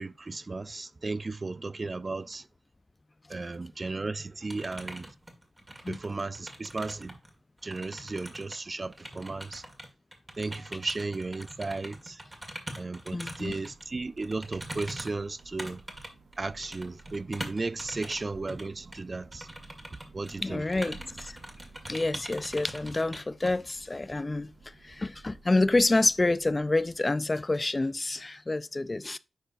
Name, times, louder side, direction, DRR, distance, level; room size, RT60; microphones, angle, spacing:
voice 1, 0.0-2.4 3.3-5.1 5.9-7.2 7.6-9.6 10.4-12.2 12.8-15.8 16.4-19.5 20.1-20.6, right 3 dB, 45° right, 0.3 m, -35 dB
sound 1, 4.5-7.3 7.6-13.8 14.2-18.2 18.5-18.7 18.9-19.0 19.3-20.4 20.7-23.2, right 1 dB, 25° right, 2.0 m, -43 dB
voice 2, 13.1-13.6 20.4-21.4 21.9-29.2, left 2 dB, 35° left, 0.4 m, -28 dB
Thunder / Rain, 13.6-27.6, right 4 dB, 80° right, 0.7 m, -55 dB
10.0 x 4.4 x 2.6 m
cardioid pair, 40°, 0 cm